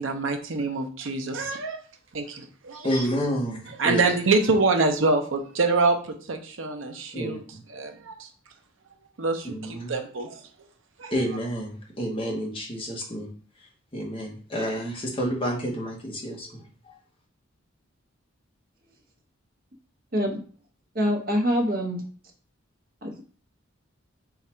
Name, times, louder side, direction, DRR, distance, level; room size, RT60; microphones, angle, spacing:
voice 1, 0.0-1.8 2.1-3.0 3.7-7.4 7.7-8.3 9.2-10.4 11.0-11.2, right 3 dB, 70° right, 5 dB, 0.7 m, -26 dB
voice 2, 2.8-4.0 7.1-7.4 9.6-9.9 11.1-13.3 13.9-16.5, equal, 25° left, -2 dB, 1.1 m, -29 dB
voice 3, 20.9-22.0 23.0-23.1, equal, 45° right, 1 dB, 1.0 m, -24 dB
3.8 x 2.4 x 4.3 m, 0.42 s
head